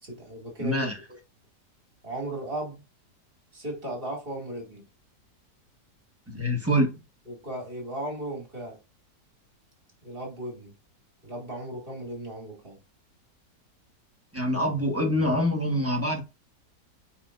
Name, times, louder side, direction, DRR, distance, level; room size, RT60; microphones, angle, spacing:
voice 1, 0.0-0.9 2.0-2.8 3.5-4.8 7.3-8.8 10.0-10.7 11.2-12.8, right 1 dB, 30° right, 2.6 m, -36 dB
voice 2, 0.6-1.0 6.3-6.9 14.3-16.2, equal, 10° right, 1.3 m, -25 dB
8.6 x 4.5 x 2.5 m
omnidirectional pair, 1.8 m